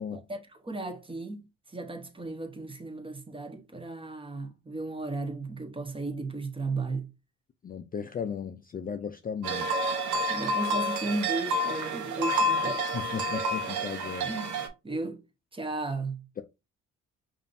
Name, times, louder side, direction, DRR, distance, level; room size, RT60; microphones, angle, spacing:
voice 1, 0.1-1.4 1.7-7.1 10.3-13.1 14.2-15.2 15.5-16.3, right 2 dB, 15° right, 0.9 m, -35 dB
voice 2, 7.6-9.7 12.9-14.3, left 7 dB, 30° left, 0.4 m, -36 dB
sound 1, 9.4-14.7, equal, 70° right, 0.9 m, -29 dB
5.1 x 2.6 x 2.6 m
cardioid pair, 90°, 30 cm